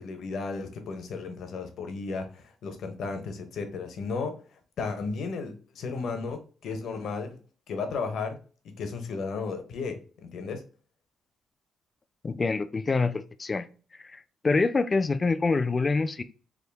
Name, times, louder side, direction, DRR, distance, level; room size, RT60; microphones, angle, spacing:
voice 1, 0.0-4.4 4.8-7.4 7.7-8.4 8.6-10.6, left 4 dB, 70° left, 0.8 m, -34 dB
voice 2, 12.2-13.7 14.0-16.2, left 3 dB, 30° left, 0.3 m, -26 dB
3.6 x 2.3 x 3.4 m
cardioid pair, 95°, 0 cm